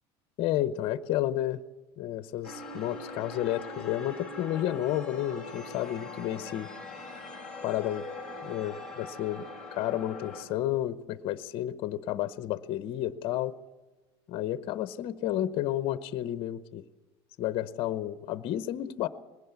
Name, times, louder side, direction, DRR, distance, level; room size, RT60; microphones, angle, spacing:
voice 1, 0.4-1.6 2.0-6.7 7.6-8.0 8.4-13.5 14.3-16.8 17.4-19.1, left 13 dB, 45° left, 14 dB, 0.8 m, -31 dB
sound 1, 2.4-10.4, left 2 dB, 5° left, 5.6 m, -42 dB
20.5 x 16.5 x 8.2 m, 1.1 s
cardioid pair, 155°, 13 cm